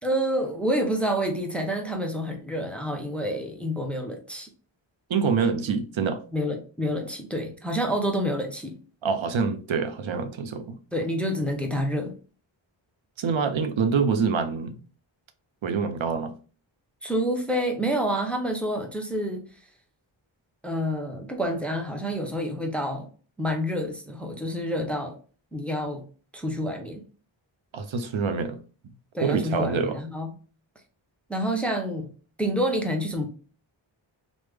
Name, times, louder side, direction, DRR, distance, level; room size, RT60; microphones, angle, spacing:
voice 1, 0.0-4.5 6.3-8.8 10.9-12.2 17.0-19.5 20.6-23.1 23.4-25.2 25.5-26.1 26.3-27.0 29.1-30.3 31.3-32.1 32.4-33.3, equal, ahead, 0.6 m, -28 dB
voice 2, 5.1-6.2 9.0-10.8 13.2-14.8 15.6-16.3 27.7-28.6 29.2-30.0, right 5 dB, 70° right, 0.5 m, -26 dB
3.2 x 2.1 x 3.3 m
wide cardioid pair, 75°, 49 cm